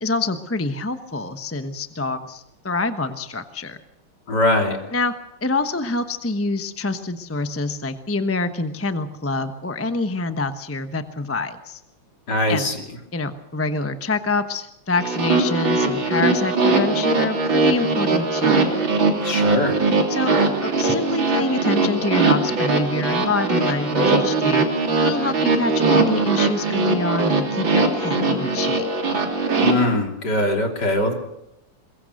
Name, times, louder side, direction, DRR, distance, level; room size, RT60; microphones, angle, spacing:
voice 1, 0.0-3.8 4.9-5.1 5.4-11.8 12.5-12.7 13.1-18.6 20.1-20.4 20.6-24.7 25.0-28.9, left 3 dB, 15° left, 9 dB, 0.5 m, -26 dB
voice 2, 4.3-4.8 12.3-12.8 19.2-19.8 29.6-31.1, left 1 dB, 50° left, 3 dB, 3.7 m, -21 dB
sound 1, 15.0-29.7, right 3 dB, 60° right, 3.8 m, -20 dB
22.5 x 22.0 x 6.5 m, 0.84 s
omnidirectional pair, 2.4 m